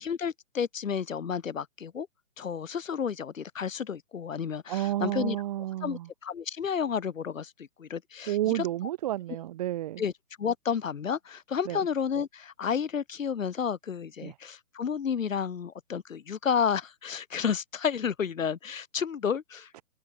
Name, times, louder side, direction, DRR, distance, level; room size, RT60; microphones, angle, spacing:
voice 1, 0.0-2.1 2.4-5.4 5.8-8.7 10.0-10.1 10.4-19.8, left 7 dB, 70° left, 3.6 m, -31 dB
voice 2, 4.7-6.1 8.3-10.0 11.7-11.8 14.2-14.3 19.7-19.8, right 14 dB, 30° right, 2.0 m, -31 dB
hypercardioid pair, 165°, 41 cm